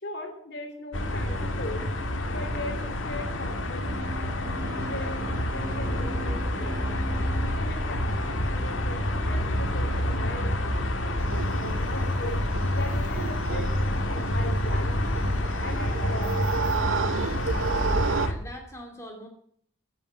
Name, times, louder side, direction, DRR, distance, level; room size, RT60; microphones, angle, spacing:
voice 1, 0.0-1.9 2.3-4.1 4.7-7.0 7.4-8.2 8.4-11.0 11.6-12.4 12.7-15.2 15.6-16.5, left 1 dB, 55° left, 3 dB, 3.0 m, -39 dB
sound 1, 0.9-18.3, left 1 dB, 80° left, 1.9 m, -28 dB
sound 2, 3.9-8.9, right 4 dB, 15° right, 4.1 m, -41 dB
sound 3, 11.2-18.3, right 6 dB, 80° right, 0.6 m, -32 dB
voice 2, 17.5-19.3, equal, 15° left, 2 dB, 2.4 m, -43 dB
15.5 x 7.2 x 8.7 m, 0.64 s
head